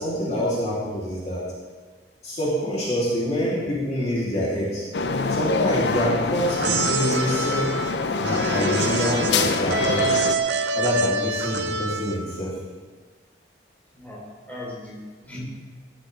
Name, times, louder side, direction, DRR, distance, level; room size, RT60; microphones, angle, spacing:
voice 1, 0.0-1.4 2.2-4.8 5.3-7.7 8.2-10.3 10.7-12.5, equal, 40° left, -7 dB, 3.2 m, -26 dB
sound 1, 4.9-10.4, left 4 dB, 80° left, 0.7 m, -25 dB
sound 2, 6.5-12.4, right 3 dB, 90° right, 0.8 m, -26 dB
voice 2, 13.9-15.4, left 1 dB, 10° left, -6 dB, 4.0 m, -38 dB
16.5 x 11.5 x 3.5 m, 1.5 s
head